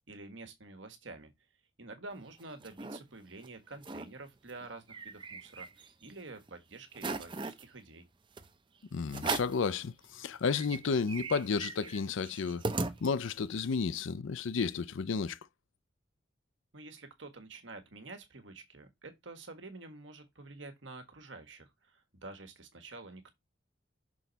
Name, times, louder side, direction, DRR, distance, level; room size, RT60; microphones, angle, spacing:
voice 1, 0.1-1.3 1.8-8.1 16.7-23.3, right 3 dB, 75° right, 1.5 m, -48 dB
sound 1, 2.2-3.0 3.4-3.5 3.7-4.1 4.5-6.1 6.5-6.6 6.9-7.6 8.4-8.5 9.1-9.7 10.1-10.2 10.5-13.5, right 3 dB, 25° right, 0.6 m, -38 dB
voice 2, 8.9-12.6 13.0-15.4, left 5 dB, 80° left, 0.5 m, -32 dB
6.2 x 4.0 x 4.4 m
head